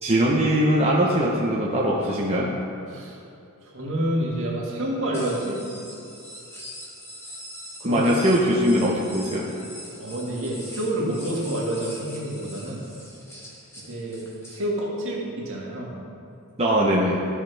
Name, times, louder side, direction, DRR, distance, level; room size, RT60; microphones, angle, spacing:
voice 1, 0.0-2.5 7.8-9.4 16.6-17.2, equal, 30° right, -5 dB, 0.9 m, -21 dB
voice 2, 2.9-3.2 3.6-5.6 7.8-8.1 10.0-12.8 13.8-14.2 14.5-16.0, right 1 dB, 60° right, -3 dB, 1.9 m, -28 dB
sound 1, 5.1-14.6, equal, 10° left, 1.5 m, -42 dB
13.5 x 6.3 x 3.4 m, 2.6 s
head